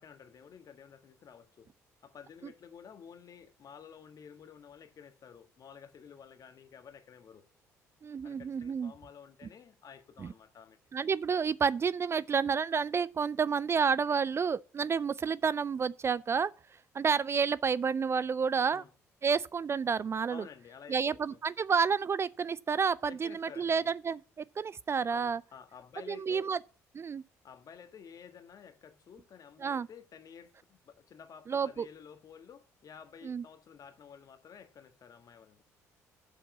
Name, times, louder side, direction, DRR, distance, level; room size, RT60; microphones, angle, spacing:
voice 1, 0.0-1.7 2.0-7.4 8.2-10.8 18.7-18.9 20.3-21.4 23.1-23.9 25.1-26.5 27.4-35.6, left 7 dB, 50° left, 1.4 m, -52 dB
voice 2, 8.0-8.9 10.2-10.3 10.9-16.5 16.9-18.8 19.2-20.4 20.9-24.2 24.6-25.4 26.1-26.6 26.9-27.2 29.6-29.9 31.5-31.9 33.2-33.4, right 6 dB, 30° right, 0.4 m, -30 dB
7.2 x 7.1 x 7.5 m
hypercardioid pair, 50°, 8 cm